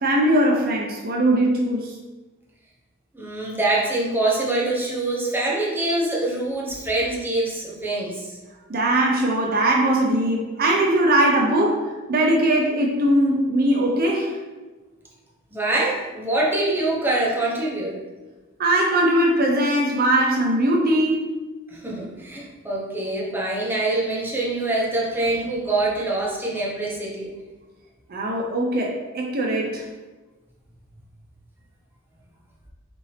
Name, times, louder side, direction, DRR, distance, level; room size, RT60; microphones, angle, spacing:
voice 1, 0.0-1.9 8.7-14.3 18.6-21.2 28.1-29.8, right 1 dB, 45° right, -1 dB, 0.5 m, -20 dB
voice 2, 3.1-8.4 15.5-18.0 21.7-27.3, right 2 dB, 10° right, -4 dB, 0.8 m, -24 dB
5.6 x 2.6 x 3.2 m, 1.2 s
head